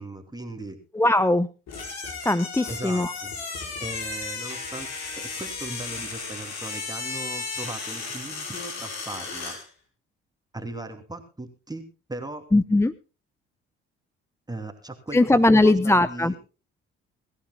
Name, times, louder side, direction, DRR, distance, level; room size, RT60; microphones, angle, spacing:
voice 1, 0.0-0.8 2.7-3.3 3.8-4.9 5.2-9.6 10.5-12.5 14.5-16.4, right 2 dB, 10° right, 5 dB, 2.8 m, -38 dB
voice 2, 0.9-1.5 2.2-3.1 12.5-12.9 15.1-16.3, left 2 dB, 10° left, 15 dB, 0.8 m, -19 dB
sound 1, 1.7-9.7, left 4 dB, 55° left, 5.5 m, -34 dB
24.0 x 15.0 x 2.3 m, 0.32 s
hypercardioid pair, 50°, 31 cm